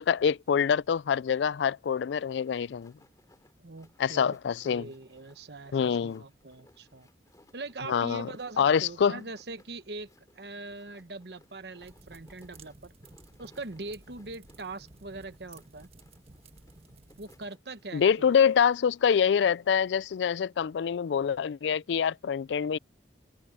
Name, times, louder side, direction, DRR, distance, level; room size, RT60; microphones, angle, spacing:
voice 1, 0.0-2.9 4.0-4.9 5.7-6.2 7.9-8.3 8.6-9.2 17.9-22.8, left 7 dB, 75° left, 0.3 m, -25 dB
sound 1, 2.1-20.4, left 1 dB, 20° left, 2.9 m, -64 dB
voice 2, 3.6-4.4 4.6-7.1 7.5-12.9 13.4-15.9 17.2-18.4, right 3 dB, 65° right, 1.1 m, -42 dB
sound 2, 11.8-17.5, right 2 dB, 35° right, 1.4 m, -54 dB
head